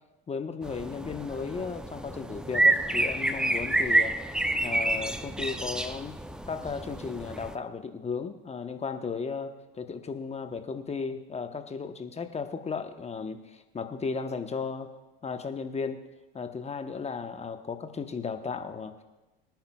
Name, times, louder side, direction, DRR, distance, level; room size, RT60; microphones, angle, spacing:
voice 1, 0.3-4.2 4.6-6.1 6.5-14.9 15.2-16.0 16.3-19.0, left 5 dB, 20° left, 8 dB, 1.0 m, -35 dB
sound 1, 0.6-7.5, right 2 dB, 5° right, 0.6 m, -28 dB
24.0 x 10.5 x 2.3 m, 1.1 s
hypercardioid pair, 80°, 29 cm